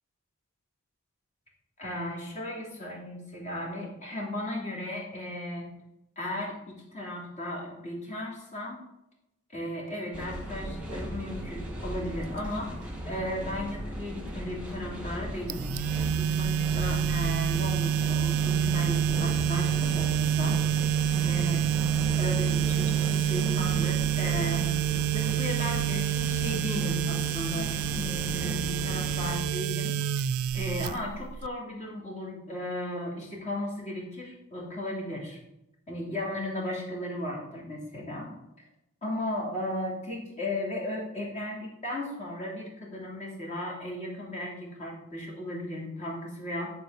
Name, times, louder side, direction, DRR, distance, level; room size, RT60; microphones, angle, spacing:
voice 1, 1.8-5.7 6.2-8.8 9.5-15.7 15.9-20.9 21.2-21.7 22.2-24.7 25.1-30.3 30.5-35.4 35.9-38.3 39.0-46.7, left 1 dB, 35° left, -3 dB, 2.8 m, -36 dB
sound 1, 10.1-29.4, right 1 dB, 5° right, 2.1 m, -36 dB
sound 2, 15.5-31.5, right 10 dB, 85° right, 0.3 m, -27 dB
10.5 x 4.3 x 5.6 m, 0.86 s
head